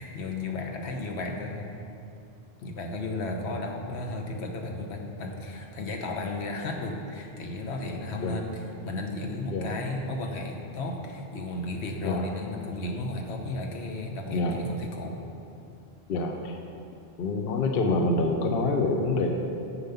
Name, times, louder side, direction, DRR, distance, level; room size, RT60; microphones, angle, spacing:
voice 1, 0.0-1.8 2.6-15.2, left 2 dB, 80° left, 2 dB, 1.2 m, -34 dB
voice 2, 12.0-12.3 14.3-14.6 16.1-16.6 17.2-19.3, left 3 dB, 65° left, 3 dB, 0.8 m, -26 dB
7.3 x 7.1 x 5.6 m, 2.6 s
omnidirectional pair, 1.1 m